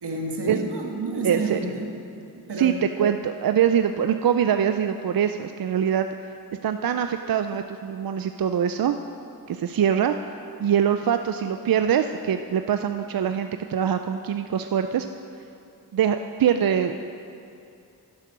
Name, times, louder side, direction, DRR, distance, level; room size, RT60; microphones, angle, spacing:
voice 1, 0.0-1.9 2.3-2.8, right 2 dB, 90° right, 1 dB, 1.7 m, -29 dB
voice 2, 1.2-1.6 2.6-2.7 3.0-6.1 6.6-9.0 9.5-10.2 10.6-15.1 15.9-17.0, right 8 dB, 65° right, 8 dB, 0.5 m, -23 dB
11.5 x 10.5 x 6.2 m, 2.6 s
wide cardioid pair, 70°, 39 cm